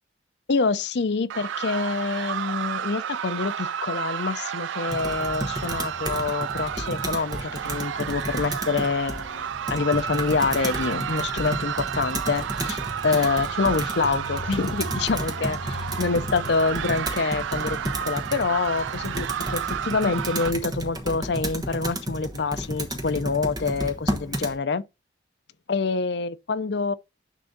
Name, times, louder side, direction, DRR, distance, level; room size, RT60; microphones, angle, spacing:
voice 1, 0.5-24.8 25.7-26.9, left 4 dB, 60° left, 0.5 m, -26 dB
sound 1, 1.3-20.5, right 8 dB, 70° right, 0.3 m, -32 dB
Computer keyboard, 4.9-24.6, right 1 dB, 20° right, 1.2 m, -33 dB
10.0 x 3.5 x 4.0 m
head